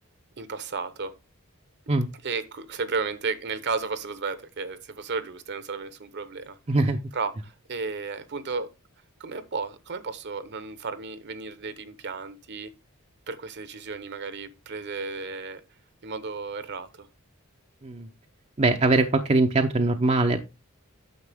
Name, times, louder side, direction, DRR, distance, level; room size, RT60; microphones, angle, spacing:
voice 1, 0.4-1.1 2.2-6.6 7.1-8.7 9.2-12.7 13.3-15.6 16.0-17.1, right 4 dB, 50° right, 0.9 m, -33 dB
voice 2, 6.7-7.0 17.8-18.1 18.6-20.4, right 2 dB, 30° right, 0.6 m, -22 dB
9.6 x 6.7 x 3.5 m
head